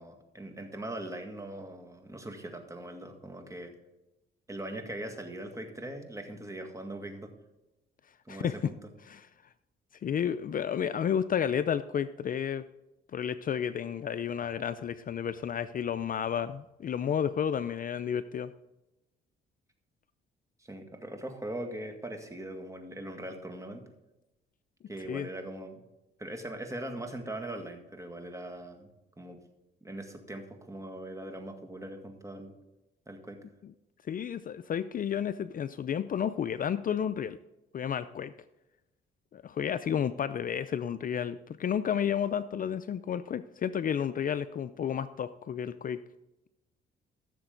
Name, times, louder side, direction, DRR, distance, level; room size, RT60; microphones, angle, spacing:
voice 1, 0.0-3.7 4.5-7.3 8.3-8.7 20.6-23.8 24.9-25.8 26.2-28.9 29.2-29.4 29.8-32.5 33.1-33.4, right 1 dB, 15° right, 4 dB, 1.9 m, -41 dB
voice 2, 8.3-8.7 9.1-9.3 10.0-12.7 13.1-18.5 25.1-25.3 34.1-37.4 37.7-38.3 39.3-46.0, left 8 dB, 45° left, 13 dB, 0.5 m, -31 dB
15.0 x 7.0 x 3.9 m, 0.99 s
cardioid pair, 90°, 20 cm